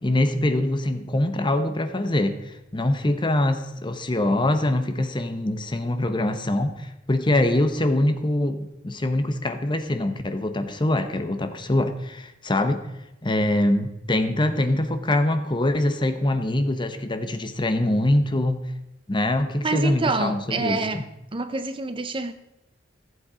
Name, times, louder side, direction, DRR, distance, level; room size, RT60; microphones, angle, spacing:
voice 1, 0.0-2.4 2.7-12.8 13.2-18.6 19.1-21.0, left 1 dB, 25° left, 0.9 m, -24 dB
voice 2, 19.6-21.0 21.3-22.3, right 3 dB, 30° right, 0.6 m, -27 dB
15.0 x 7.9 x 4.9 m
head